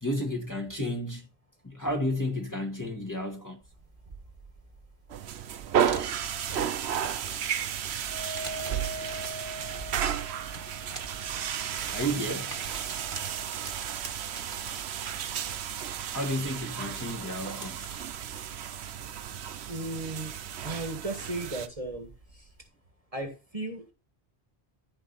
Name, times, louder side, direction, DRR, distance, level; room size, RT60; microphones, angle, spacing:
voice 1, 0.0-1.3 1.6-3.6 11.9-12.5 16.1-17.9, equal, 15° left, 1.7 m, -32 dB
sound 1, 3.6-22.7, right 3 dB, 50° right, 1.7 m, -47 dB
sound 2, 5.1-21.7, right 9 dB, 85° right, 1.0 m, -33 dB
Wind instrument woodwind instrument, 8.0-13.7, right 1 dB, 50° left, 4.3 m, -43 dB
voice 2, 19.7-20.3 20.6-22.5 23.1-23.9, right 2 dB, 35° right, 1.7 m, -36 dB
12.5 x 5.0 x 4.1 m
omnidirectional pair, 1.1 m